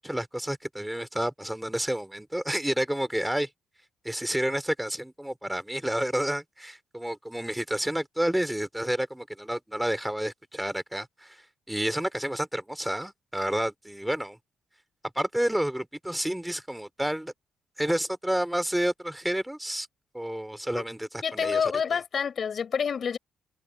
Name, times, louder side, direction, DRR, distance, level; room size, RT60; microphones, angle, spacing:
voice 1, 0.0-3.5 4.0-14.4 15.1-17.3 17.8-19.9 20.1-22.0, right 1 dB, 5° right, 3.0 m, -30 dB
voice 2, 21.2-23.2, left 7 dB, 50° left, 4.7 m, -28 dB
cardioid pair, 90°, 0 cm